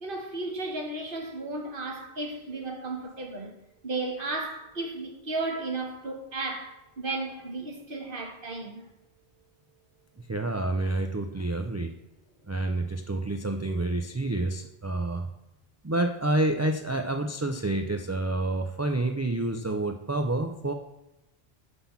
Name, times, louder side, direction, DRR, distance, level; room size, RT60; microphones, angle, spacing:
voice 1, 0.0-3.6 3.8-8.8, right 2 dB, 55° right, 1.5 m, -34 dB
voice 2, 10.2-11.9 12.5-15.3 15.8-20.7, right 2 dB, 25° right, 0.3 m, -28 dB
5.8 x 5.8 x 7.0 m
omnidirectional pair, 1.1 m